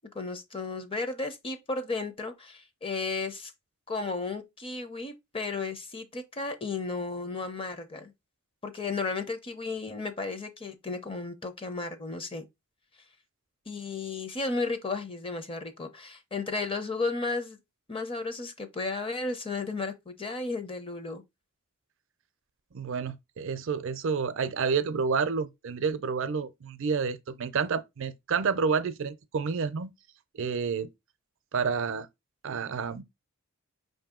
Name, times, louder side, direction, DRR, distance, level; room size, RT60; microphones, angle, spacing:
voice 1, 0.1-3.5 3.9-8.1 8.6-12.5 13.7-17.6 17.9-21.2, left 3 dB, 25° left, 0.6 m, -34 dB
voice 2, 22.7-29.9 30.4-30.9 31.5-32.1 32.4-33.0, right 5 dB, 60° right, 0.5 m, -29 dB
5.3 x 2.7 x 3.6 m
head